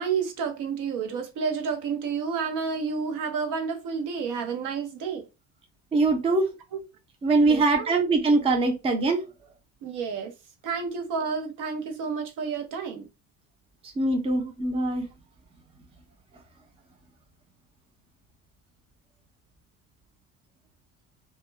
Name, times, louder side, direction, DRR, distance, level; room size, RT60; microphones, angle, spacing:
voice 1, 0.0-5.3 6.7-6.8 7.5-8.0 9.8-10.3 10.6-13.1 14.4-14.5, right 5 dB, 75° right, 0.8 m, -30 dB
voice 2, 5.9-6.5 7.2-9.2 14.0-15.1, right 3 dB, 20° right, 0.5 m, -22 dB
2.3 x 2.1 x 3.1 m
cardioid pair, 155°, 32 cm